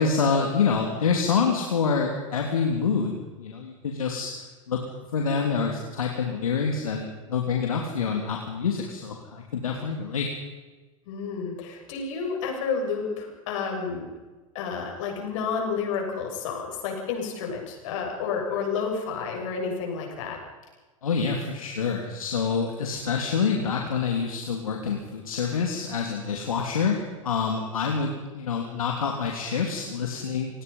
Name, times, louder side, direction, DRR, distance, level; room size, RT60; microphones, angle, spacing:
voice 1, 0.0-4.3 4.7-4.8 5.1-10.3 21.0-30.6, left 5 dB, 80° left, 1 dB, 3.1 m, -27 dB
voice 2, 11.1-14.1 14.5-20.4, left 5 dB, 65° left, 1 dB, 7.8 m, -30 dB
29.0 x 19.0 x 5.6 m, 1.3 s
hypercardioid pair, 95°, 17 cm